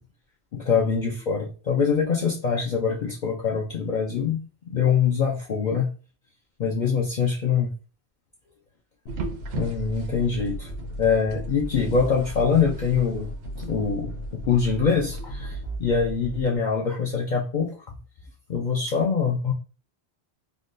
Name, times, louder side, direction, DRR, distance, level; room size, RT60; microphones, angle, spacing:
voice 1, 0.5-5.9 6.6-7.7 9.5-10.7 11.0-13.3 13.6-18.0 18.5-19.5, left 6 dB, 55° left, 0.5 m, -24 dB
sound 1, 9.0-16.4, equal, 85° left, 1.0 m, -35 dB
sound 2, 9.1-16.6, right 5 dB, 75° right, 0.8 m, -41 dB
3.5 x 2.2 x 2.5 m
omnidirectional pair, 1.1 m